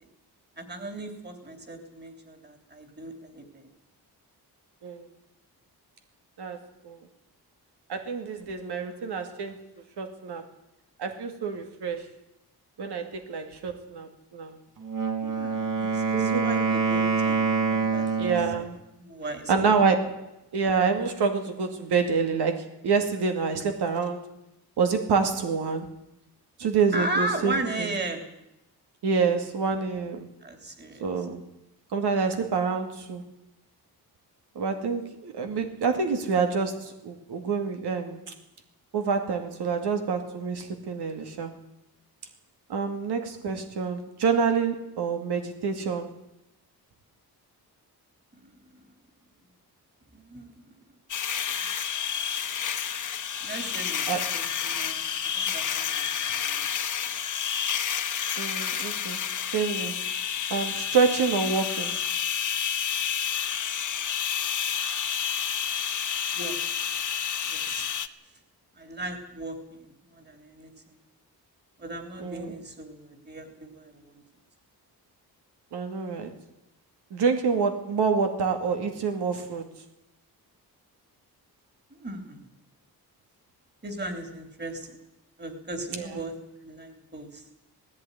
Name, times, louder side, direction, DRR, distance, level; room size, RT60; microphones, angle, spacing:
voice 1, 0.6-3.7 15.2-17.4 17.7-18.3 19.0-19.5 26.9-28.2 29.2-29.3 30.4-31.3 50.1-50.5 53.4-55.1 55.3-56.7 66.3-66.6 67.5-67.9 68.8-71.0 71.8-74.2 81.9-82.5 83.8-85.0 85.4-86.3 86.6-87.4, right 2 dB, 25° right, 6 dB, 3.4 m, -37 dB
voice 2, 7.9-9.6 10.0-10.5 11.0-12.1 12.8-14.6 16.1-16.8 18.2-18.8 19.5-24.3 24.8-25.9 26.6-27.9 29.0-30.3 31.0-31.4 31.9-33.2 34.6-38.2 38.9-41.5 42.7-46.1 54.1-54.2 58.4-59.2 59.5-59.9 60.5-62.0 72.2-72.5 75.7-76.4 77.1-79.7 85.9-86.2, right 5 dB, 85° right, 6 dB, 2.4 m, -27 dB
Wind instrument woodwind instrument, 14.8-18.6, right 5 dB, 55° right, 4.2 m, -26 dB
sound 1, 51.1-68.1, left 8 dB, 50° left, 1.2 m, -30 dB
18.0 x 15.5 x 9.8 m, 0.87 s
wide cardioid pair, 140°, 39 cm